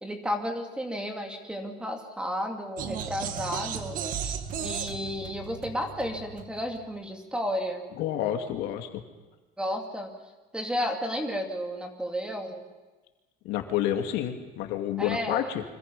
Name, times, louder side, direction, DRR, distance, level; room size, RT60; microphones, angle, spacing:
voice 1, 0.0-7.9 9.6-10.1 10.5-12.6 15.0-15.5, equal, 5° right, 3 dB, 2.6 m, -32 dB
sound 1, 2.8-6.9, right 7 dB, 50° right, 1.7 m, -35 dB
voice 2, 8.0-9.0 13.4-15.6, left 11 dB, 70° left, 5 dB, 2.4 m, -29 dB
29.0 x 26.0 x 5.5 m, 1.2 s
cardioid pair, 165°, 18 cm